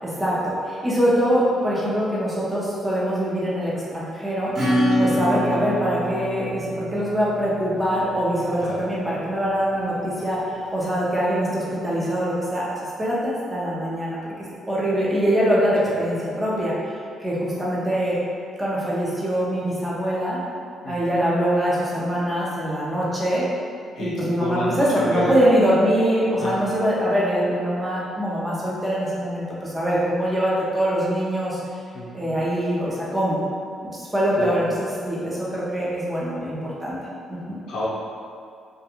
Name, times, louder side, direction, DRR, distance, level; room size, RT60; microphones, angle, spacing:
voice 1, 0.0-4.5 5.0-16.9 17.2-18.2 18.6-20.4 20.9-23.4 24.0-31.6 32.1-33.4 33.8-37.0 37.3-37.6, equal, 15° right, -6 dB, 0.6 m, -23 dB
Acoustic guitar / Strum, 4.5-8.8, equal, 50° right, 0.9 m, -25 dB
voice 2, 4.9-5.2 8.6-8.8 20.8-21.0 24.0-24.1 24.4-25.3 26.4-26.8 31.9-32.4 34.4-34.6 37.7-37.9, left 1 dB, 75° left, -5 dB, 0.6 m, -29 dB
2.3 x 2.3 x 2.9 m, 2.3 s
cardioid pair, 90°, 0 cm